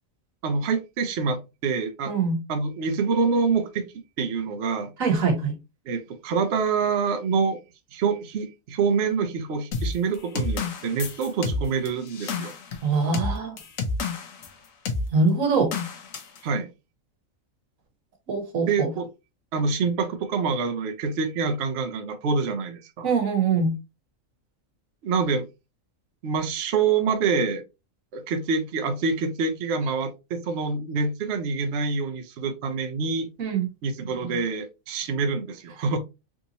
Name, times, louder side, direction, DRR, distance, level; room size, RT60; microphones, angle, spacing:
voice 1, 0.4-2.1 2.5-3.9 4.2-4.9 5.9-7.6 7.9-12.5 16.4-16.7 18.7-19.1 19.5-23.1 25.0-25.4 26.2-27.6 28.1-33.3 33.8-36.0, right 5 dB, 60° right, 0.8 m, -26 dB
voice 2, 2.1-2.4 5.0-5.6 12.8-13.6 15.1-15.7 18.3-18.9 23.0-23.7 33.4-33.7, right 4 dB, 85° right, 1.5 m, -23 dB
sound 1, 9.7-14.5 14.9-15.1 15.7-16.4, left 4 dB, 80° left, 1.1 m, -30 dB
3.6 x 2.6 x 2.8 m
omnidirectional pair, 1.4 m